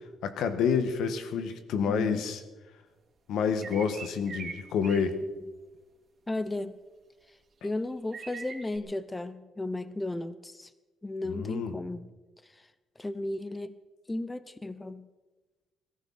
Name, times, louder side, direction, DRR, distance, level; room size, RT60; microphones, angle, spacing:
voice 1, 0.2-2.4 3.3-5.2 11.2-11.7, left 6 dB, 80° left, 9 dB, 1.6 m, -28 dB
voice 2, 1.9-2.2 6.3-6.8 7.6-10.7 11.0-12.1 12.5-12.6 13.0-13.8 14.1-15.1, left 2 dB, 15° left, 14 dB, 0.7 m, -34 dB
sound 1, 3.6-4.6 4.8-5.1 8.1-8.8, right 5 dB, 45° right, 2.8 m, -41 dB
22.0 x 14.5 x 4.3 m, 1.2 s
cardioid pair, 115°, 0 cm